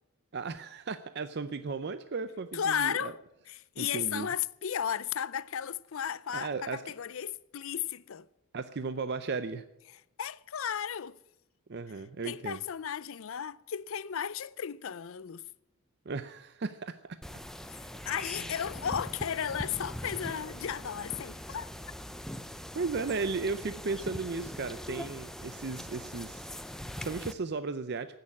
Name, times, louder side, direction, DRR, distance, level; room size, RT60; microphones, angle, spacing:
voice 1, 0.3-3.1 3.8-4.3 6.3-6.9 8.5-9.6 11.7-12.6 16.1-17.2 18.3-18.5 22.7-28.2, right 4 dB, 50° right, 0.5 m, -35 dB
voice 2, 2.5-3.2 3.5-8.3 10.2-11.2 12.2-15.4 17.7-21.7 22.2-22.3, left 8 dB, 65° left, 0.5 m, -34 dB
sound 1, 17.2-27.3, equal, ahead, 0.5 m, -42 dB
16.0 x 6.7 x 9.7 m
head